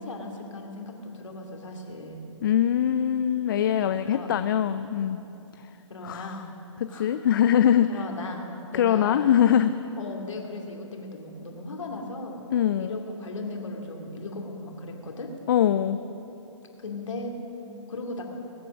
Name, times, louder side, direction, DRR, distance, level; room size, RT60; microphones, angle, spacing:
voice 1, 0.0-2.4 4.1-4.3 4.7-5.1 5.9-6.4 6.9-7.1 7.9-8.4 8.7-9.3 10.0-12.5 12.8-15.3 16.8-17.3 17.9-18.2, left 2 dB, 70° left, 1 dB, 2.6 m, -37 dB
voice 2, 2.4-5.2 5.6-5.7 6.0-6.4 6.8-8.0 8.7-9.7 12.5-13.0 15.5-16.0, left 10 dB, 45° left, 11 dB, 0.4 m, -23 dB
21.0 x 8.3 x 6.3 m, 3.0 s
hypercardioid pair, 140°, 16 cm